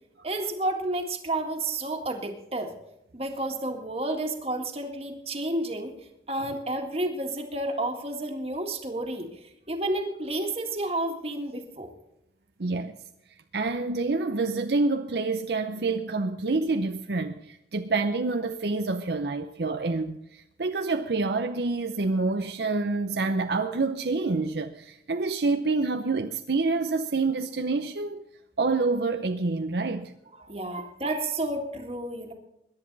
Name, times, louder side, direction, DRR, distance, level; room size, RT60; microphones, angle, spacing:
voice 1, 0.2-2.7 3.1-6.0 6.3-11.9 30.4-32.3, right 1 dB, 35° right, 1.9 m, -31 dB
voice 2, 12.6-12.9 13.5-28.2 28.6-30.1 30.7-30.8, right 3 dB, 70° right, 0.7 m, -27 dB
22.0 x 10.5 x 4.0 m
head